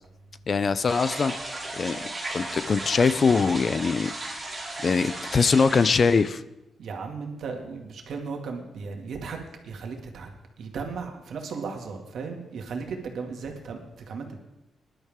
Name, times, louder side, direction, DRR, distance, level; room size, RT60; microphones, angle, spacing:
voice 1, 0.5-1.4 1.7-4.1 4.8-6.4, left 5 dB, 40° left, 15 dB, 0.5 m, -22 dB
sound 1, 0.9-6.3, right 2 dB, 15° right, 4.1 m, -35 dB
voice 2, 6.8-10.3 10.6-14.4, right 5 dB, 70° right, 3 dB, 2.2 m, -36 dB
19.5 x 11.5 x 3.7 m, 0.94 s
cardioid pair, 120°, 0 cm